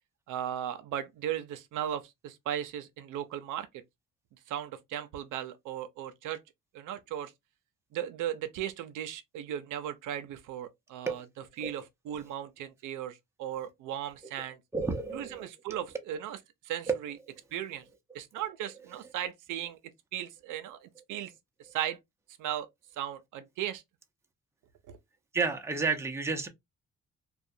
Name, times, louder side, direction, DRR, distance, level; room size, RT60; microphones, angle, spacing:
voice 1, 0.3-3.7 4.5-6.4 6.7-7.3 7.9-11.2 11.6-14.6 15.1-16.4 16.6-17.2 17.5-17.8 18.1-19.8 20.1-21.3 21.6-22.0 22.4-22.7 23.0-23.8 24.9-25.0, right 10 dB, 85° right, 0.5 m, -37 dB
voice 2, 14.7-15.5 16.9-17.0 25.3-26.5, right 4 dB, 10° right, 0.5 m, -30 dB
2.4 x 2.1 x 2.6 m
cardioid pair, 90°, 30 cm